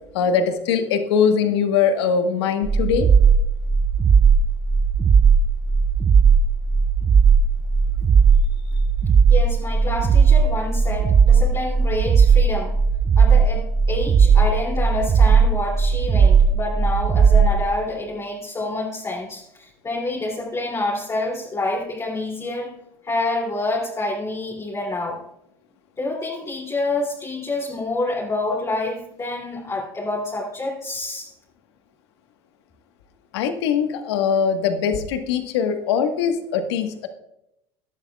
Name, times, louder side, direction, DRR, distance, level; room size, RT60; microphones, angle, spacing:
voice 1, 0.1-3.1 33.3-37.1, left 6 dB, 80° left, 6 dB, 1.4 m, -21 dB
sound 1, 2.6-17.6, right 5 dB, 25° right, 0.6 m, -16 dB
voice 2, 9.3-12.8 13.2-22.8 23.0-25.2 26.0-31.3, left 2 dB, 25° left, -4 dB, 2.7 m, -27 dB
17.0 x 11.5 x 2.4 m, 0.84 s
supercardioid pair, 95°, 13 cm